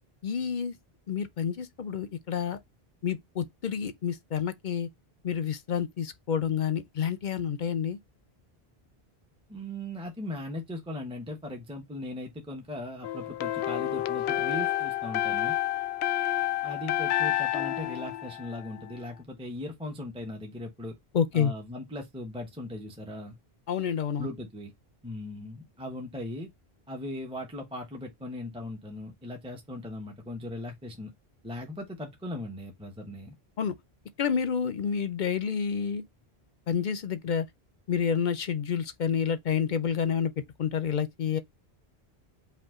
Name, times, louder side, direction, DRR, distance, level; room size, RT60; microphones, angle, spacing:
voice 1, 0.2-0.8 1.1-2.6 3.0-4.9 5.2-8.0 21.1-21.5 23.7-24.3 33.6-33.8 34.2-36.0 36.7-37.5 37.9-40.3 40.6-41.4, left 7 dB, 55° left, 0.7 m, -29 dB
voice 2, 9.5-15.6 16.6-20.9 21.3-23.4 24.2-24.7 25.0-26.5 26.9-31.1 31.4-33.3, left 1 dB, 5° right, 0.9 m, -38 dB
sound 1, 13.0-19.0, left 13 dB, 85° left, 0.8 m, -29 dB
5.2 x 2.5 x 3.6 m
omnidirectional pair, 1.1 m